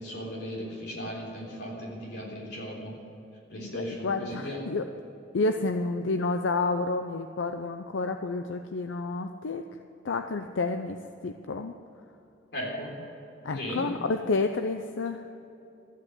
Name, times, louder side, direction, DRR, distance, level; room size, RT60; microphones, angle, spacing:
voice 1, 0.0-2.9 3.5-4.6 12.5-12.9 13.5-13.8, equal, 55° left, -2 dB, 3.7 m, -36 dB
voice 2, 3.5-4.9 5.3-9.6 10.0-11.7 13.4-15.2, left 3 dB, 85° left, 7 dB, 0.6 m, -30 dB
14.0 x 8.9 x 7.9 m, 2.8 s
head